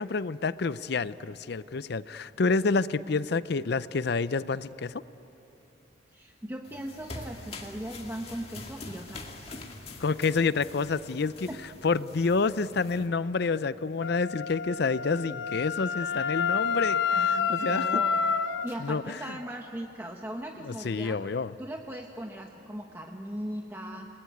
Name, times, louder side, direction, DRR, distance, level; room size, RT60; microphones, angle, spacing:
voice 1, 0.0-5.0 10.0-11.5 11.8-18.0 18.8-19.4 20.6-21.5, left 4 dB, 55° left, 16 dB, 0.5 m, -28 dB
voice 2, 6.1-9.5 11.5-11.6 17.1-18.2 18.6-21.2 21.6-24.2, right 1 dB, 10° right, 1 dB, 1.0 m, -39 dB
sound 1, 6.6-13.1, left 2 dB, 30° left, 2.0 m, -44 dB
Wind instrument woodwind instrument, 14.0-18.7, left 6 dB, 70° left, 1.0 m, -28 dB
28.5 x 20.5 x 9.3 m, 2.9 s
head